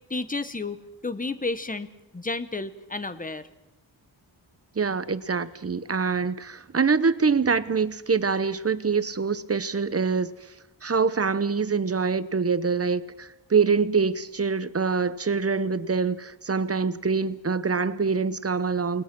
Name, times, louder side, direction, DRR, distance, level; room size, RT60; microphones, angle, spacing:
voice 1, 0.1-0.8 1.0-1.9 2.1-3.5, left 3 dB, 20° left, 12 dB, 1.1 m, -31 dB
voice 2, 4.8-10.3 10.8-19.0, right 5 dB, 35° right, 14 dB, 0.9 m, -25 dB
29.0 x 20.5 x 6.1 m, 0.95 s
wide cardioid pair, 120°, 44 cm